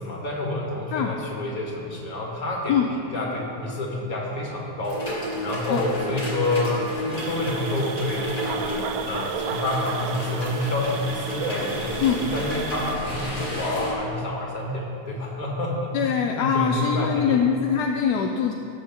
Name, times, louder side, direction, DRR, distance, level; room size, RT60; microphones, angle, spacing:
voice 1, 0.0-2.8 3.1-16.1 16.4-17.4, left 2 dB, 60° left, -2 dB, 2.2 m, -28 dB
sound 1, 4.8-13.9, equal, 25° left, 2.7 m, -32 dB
sound 2, 7.2-12.9, right 8 dB, 70° right, 0.8 m, -34 dB
voice 2, 15.9-18.5, left 7 dB, 80° left, 3 dB, 1.2 m, -23 dB
17.5 x 7.2 x 3.7 m, 2.5 s
omnidirectional pair, 1.7 m